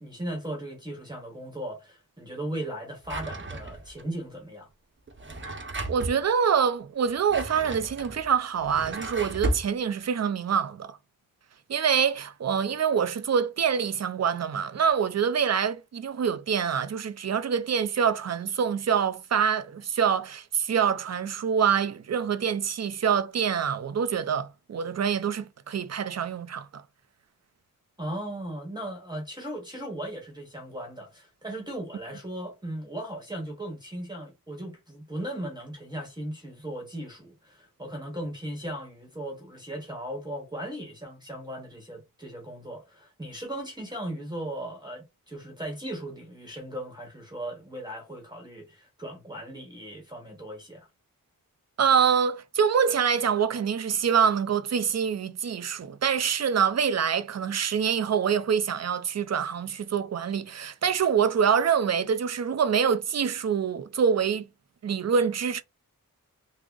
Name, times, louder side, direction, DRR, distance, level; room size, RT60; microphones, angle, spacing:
voice 1, 0.0-4.7 28.0-50.9, right 1 dB, 10° right, 1.0 m, -37 dB
Drawer open or close, 3.0-4.0 5.1-6.2 7.0-9.7, right 2 dB, 35° right, 0.8 m, -34 dB
voice 2, 5.9-11.0 11.7-26.8 51.8-64.5 64.8-65.6, right 7 dB, 50° right, 0.5 m, -25 dB
3.5 x 2.0 x 3.7 m
wide cardioid pair, 80°, 35 cm